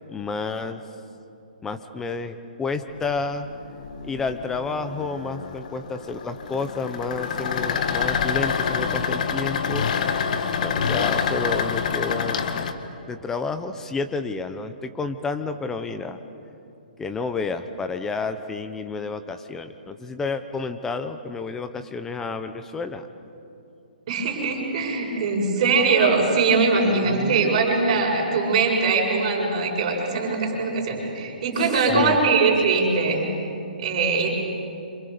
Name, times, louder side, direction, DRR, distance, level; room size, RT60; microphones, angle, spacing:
voice 1, 0.1-0.8 1.6-3.5 4.0-9.9 10.6-12.7 13.1-16.2 17.0-23.1 26.8-27.9 31.6-32.3, left 4 dB, 10° left, 9 dB, 1.0 m, -30 dB
sound 1, 2.9-12.7, left 6 dB, 55° left, 1.7 m, -27 dB
voice 2, 24.1-33.2 33.8-34.3, right 4 dB, 40° right, -2 dB, 7.7 m, -21 dB
28.5 x 27.0 x 7.0 m, 2.7 s
hypercardioid pair, 160°, 5 cm